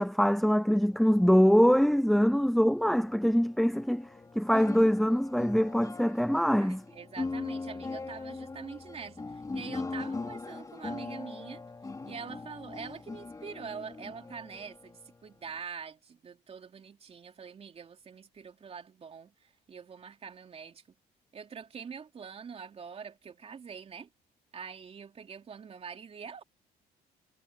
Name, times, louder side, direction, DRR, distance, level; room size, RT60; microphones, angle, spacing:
voice 1, 0.0-4.1 4.3-6.8, equal, ahead, 0.5 m, -24 dB
sound 1, 0.9-15.6, left 3 dB, 20° left, 3.9 m, -41 dB
voice 2, 6.6-11.6 12.0-20.8 21.3-24.1 24.5-26.4, right 6 dB, 35° right, 3.2 m, -44 dB
cardioid pair, 110°, 17 cm